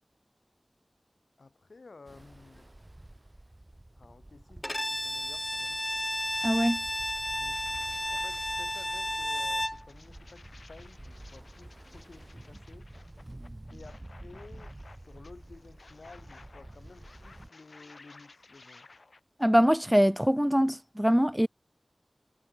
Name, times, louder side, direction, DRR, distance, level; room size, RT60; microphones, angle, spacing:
voice 1, 1.4-2.7 3.9-5.8 7.4-7.6 8.1-12.9 13.7-18.9, left 3 dB, 90° left, 3.4 m, -53 dB
Ocean, 2.0-17.5, right 1 dB, 30° right, 2.5 m, -49 dB
Bowed string instrument, 4.6-9.8, left 1 dB, 15° left, 1.1 m, -32 dB
sound 1, 5.6-5.7 6.2-19.2, left 3 dB, 75° left, 6.3 m, -56 dB
voice 2, 6.4-6.8 19.4-21.5, equal, 5° right, 0.3 m, -23 dB
wide cardioid pair, 50°, 0 cm